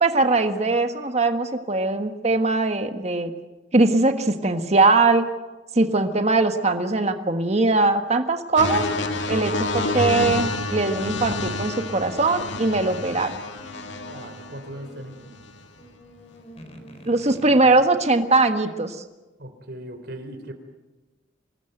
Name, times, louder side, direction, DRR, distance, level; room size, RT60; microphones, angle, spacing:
voice 1, 0.0-3.3 3.7-5.3 5.7-8.8 9.3-13.3 17.0-19.0, right 3 dB, 35° right, 7 dB, 1.5 m, -21 dB
sound 1, 8.6-14.6 15.3-15.6, left 2 dB, 75° left, 2.1 m, -28 dB
sound 2, 9.4-17.8, right 2 dB, 35° left, 3.7 m, -48 dB
voice 2, 14.1-15.1 19.4-20.5, right 1 dB, 60° right, 8 dB, 3.7 m, -38 dB
25.5 x 20.0 x 8.0 m, 1.1 s
head